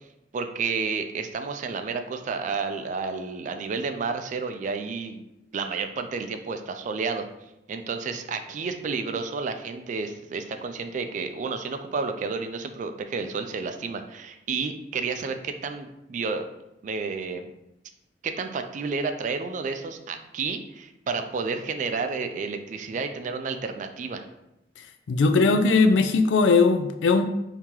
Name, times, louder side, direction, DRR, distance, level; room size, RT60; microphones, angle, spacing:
voice 1, 0.3-5.2 5.5-7.3 7.7-16.4 16.8-17.5 18.2-24.2, right 4 dB, 40° right, 7 dB, 0.3 m, -31 dB
voice 2, 25.1-27.3, left 4 dB, 85° left, 8 dB, 0.4 m, -19 dB
3.6 x 2.8 x 2.9 m, 0.88 s
head